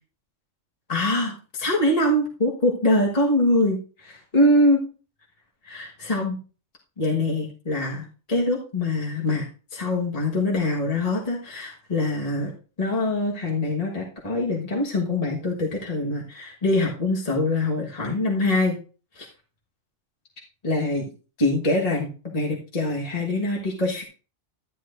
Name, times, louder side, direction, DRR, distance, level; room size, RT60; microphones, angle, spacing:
voice 1, 0.9-4.8 5.6-6.4 7.0-12.5 12.8-18.8 19.1-19.3 20.6-21.1 21.4-24.0, left 1 dB, 30° left, -2 dB, 1.5 m, -24 dB
12.0 x 10.5 x 2.5 m, 0.37 s
omnidirectional pair, 1.5 m